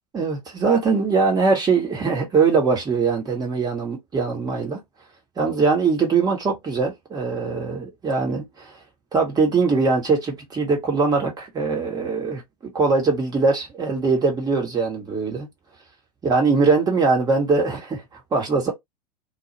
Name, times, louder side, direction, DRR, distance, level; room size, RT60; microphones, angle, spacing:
voice 1, 0.1-4.8 5.4-8.7 9.1-15.5 16.2-18.7, right 4 dB, 20° right, 1.2 m, -21 dB
2.4 x 2.4 x 2.9 m
figure-of-eight pair, 90°, 20 cm